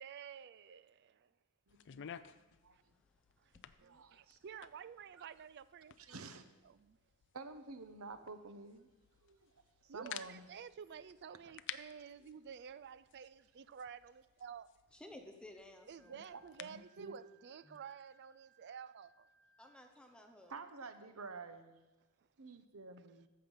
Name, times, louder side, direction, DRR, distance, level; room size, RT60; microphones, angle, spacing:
voice 1, 0.0-1.3 2.7-2.8 3.4-3.5 3.8-6.2 6.7-7.0 9.9-14.7 15.9-19.3, right 7 dB, 55° right, 0.4 m, -51 dB
sound 1, 1.7-16.9, left 10 dB, 60° left, 0.4 m, -55 dB
voice 2, 1.7-2.0 2.3-2.9 3.8-4.4 5.2-5.3 6.0-6.4 7.3-8.9 9.2-9.5 9.8-10.4 11.4-11.6 16.1-16.2 16.6-17.2 20.5-21.9 22.4-23.3, right 3 dB, 90° right, 1.0 m, -50 dB
voice 3, 14.9-16.4 17.7-17.8 19.6-20.5, left 1 dB, 5° left, 0.9 m, -55 dB
Wind instrument woodwind instrument, 16.0-19.8, right 4 dB, 75° left, 2.0 m, -70 dB
14.0 x 6.7 x 5.5 m
head